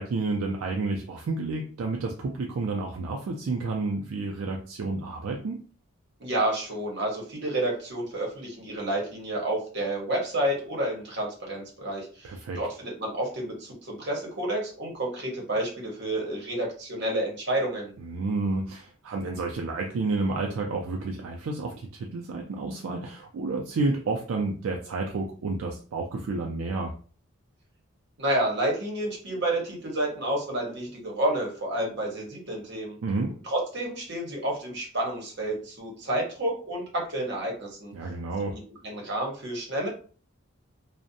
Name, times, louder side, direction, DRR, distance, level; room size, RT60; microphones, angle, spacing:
voice 1, 0.0-5.6 12.2-12.6 18.0-26.9 33.0-33.3 37.9-38.6, right 3 dB, 75° right, 1 dB, 0.4 m, -30 dB
voice 2, 6.2-12.3 12.6-17.9 28.2-33.0 33.5-37.9 38.8-39.9, right 1 dB, 55° right, -1 dB, 0.9 m, -30 dB
2.5 x 2.0 x 2.6 m, 0.41 s
head